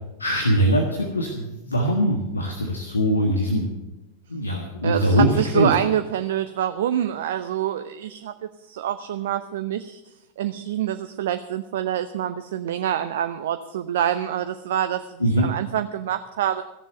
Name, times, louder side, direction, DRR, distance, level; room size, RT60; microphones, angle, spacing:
voice 1, 0.2-3.6 4.3-5.7 15.2-15.5, equal, 75° left, 3 dB, 1.5 m, -22 dB
voice 2, 4.8-8.3 8.6-10.0 10.4-16.6, right 10 dB, 55° right, 10 dB, 0.6 m, -26 dB
15.0 x 7.2 x 9.1 m, 1.0 s
figure-of-eight pair, 90°, 0 cm